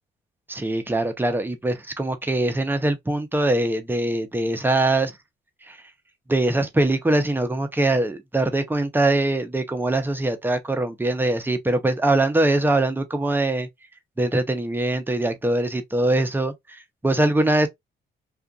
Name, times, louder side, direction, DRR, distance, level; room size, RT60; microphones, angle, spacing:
voice 1, 0.5-5.1 5.7-5.8 6.3-13.7 14.2-17.7, right 2 dB, 10° right, 0.7 m, -22 dB
2.5 x 2.4 x 2.2 m
cardioid pair, 90°, 20 cm